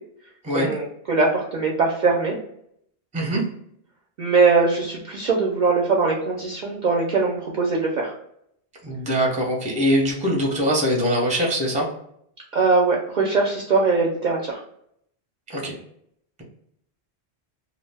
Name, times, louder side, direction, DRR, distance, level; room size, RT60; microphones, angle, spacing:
voice 1, 0.5-2.3 4.2-8.1 12.5-14.6, right 4 dB, 55° right, -2 dB, 0.5 m, -21 dB
voice 2, 3.1-3.4 8.8-11.9 15.5-15.8, equal, 10° right, -1 dB, 0.5 m, -22 dB
2.5 x 2.1 x 3.3 m, 0.71 s
omnidirectional pair, 1.1 m